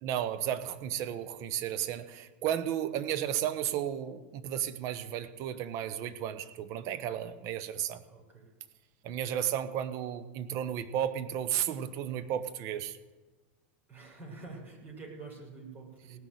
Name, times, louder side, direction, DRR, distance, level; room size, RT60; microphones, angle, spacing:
voice 1, 0.0-8.0 9.0-13.0, right 10 dB, 50° right, 13 dB, 1.2 m, -33 dB
voice 2, 8.1-8.5 13.9-16.2, right 3 dB, 30° right, -1 dB, 6.2 m, -47 dB
18.0 x 6.5 x 9.4 m, 1.2 s
hypercardioid pair, 105°, 7 cm